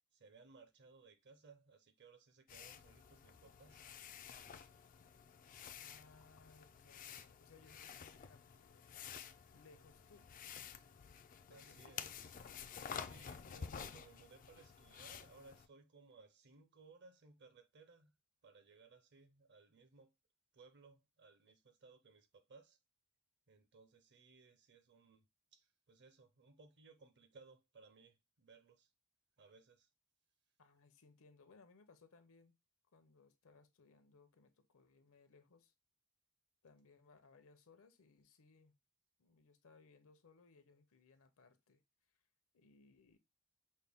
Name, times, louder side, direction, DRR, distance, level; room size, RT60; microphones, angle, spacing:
voice 1, 0.1-3.8 11.5-12.5 12.9-18.1 18.4-20.1 20.5-22.8 23.5-25.3 25.5-28.9 29.4-29.9, right 4 dB, 50° right, 0.7 m, -63 dB
sound 1, 2.5-15.7, left 7 dB, 35° left, 0.3 m, -51 dB
voice 2, 5.8-9.0 9.5-10.8 11.5-12.0 13.1-14.0 30.6-32.6 32.9-35.7 36.6-38.8 39.2-41.8 42.1-42.2 42.5-43.2, left 4 dB, 65° left, 0.7 m, -66 dB
5.4 x 2.2 x 3.4 m
head